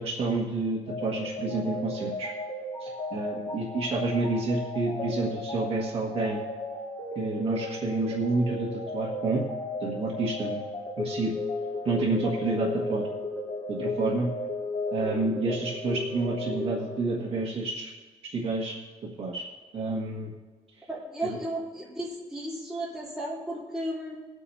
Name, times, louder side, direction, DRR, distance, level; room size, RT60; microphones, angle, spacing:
voice 1, 0.0-2.3 2.8-6.4 7.2-9.4 9.8-10.6 11.0-11.3 11.9-13.1 13.7-14.3 14.9-17.9 18.2-18.8 19.2-19.4 19.7-20.3 21.2-21.4, right 3 dB, 50° right, -2 dB, 1.7 m, -29 dB
sound 1, 0.9-17.5, left 2 dB, 35° left, 3.6 m, -35 dB
voice 2, 13.9-14.3 20.9-24.2, right 1 dB, 5° right, -7 dB, 3.4 m, -34 dB
21.5 x 8.2 x 2.8 m, 1.3 s
cardioid pair, 155°, 13 cm